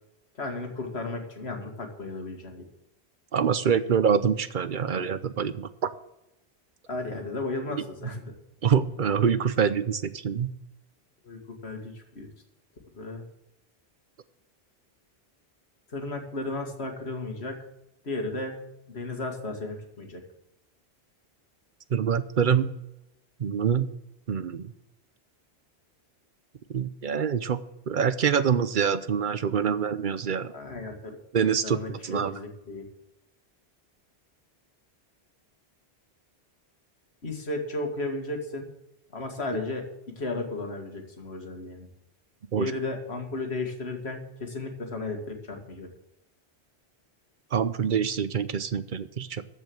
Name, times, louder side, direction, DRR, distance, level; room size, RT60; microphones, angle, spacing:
voice 1, 0.3-2.6 6.9-8.3 11.2-12.3 13.0-13.2 15.9-17.7 18.0-20.2 30.5-31.2 31.6-32.9 37.2-38.7 39.1-41.9 42.5-45.9, left 2 dB, 75° left, 3 dB, 2.2 m, -34 dB
voice 2, 3.3-5.9 7.8-7.9 8.6-10.5 21.9-22.7 23.4-23.9 24.3-24.7 26.7-30.5 31.3-32.3 42.5-42.7 47.5-49.4, right 7 dB, 55° right, 13 dB, 0.8 m, -25 dB
14.0 x 5.5 x 7.8 m, 0.88 s
omnidirectional pair, 1.1 m